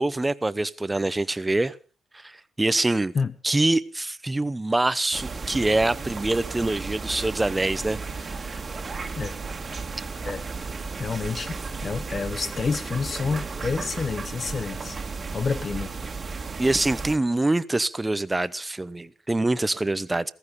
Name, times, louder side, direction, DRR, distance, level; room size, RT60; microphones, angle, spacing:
voice 1, 0.0-1.7 2.2-3.1 3.4-8.6 16.6-20.3, right 2 dB, 15° right, 0.8 m, -25 dB
sound 1, 5.1-17.2, right 4 dB, 35° right, 1.9 m, -34 dB
voice 2, 11.0-11.5 11.8-15.0 15.3-15.9, left 5 dB, 40° left, 0.9 m, -28 dB
15.0 x 14.5 x 5.3 m
cardioid pair, 90°, 0 cm